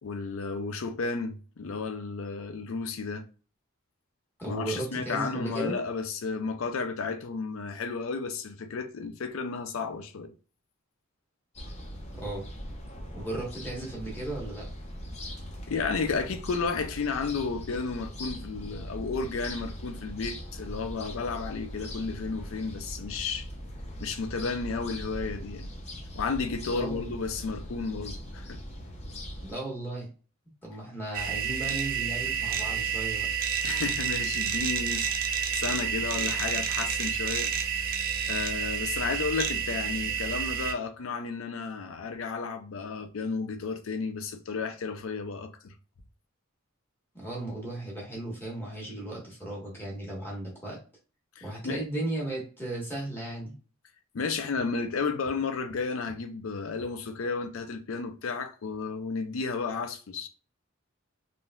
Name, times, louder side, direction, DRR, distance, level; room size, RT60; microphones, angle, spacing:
voice 1, 0.0-3.3 4.4-10.3 15.7-23.5 24.0-25.7 26.2-28.6 33.6-37.5 38.3-45.7 51.4-51.8 54.1-60.3, left 4 dB, 75° left, 0.5 m, -33 dB
voice 2, 4.4-5.8 12.1-12.5 13.1-14.7 26.7-27.1 29.4-30.1 30.6-33.3 47.1-50.8 51.4-53.5, right 2 dB, 10° left, 1.1 m, -35 dB
sound 1, 11.5-29.5, equal, 30° left, 0.6 m, -40 dB
sound 2, 31.1-40.7, right 7 dB, 45° right, 0.4 m, -30 dB
3.4 x 2.5 x 2.2 m
head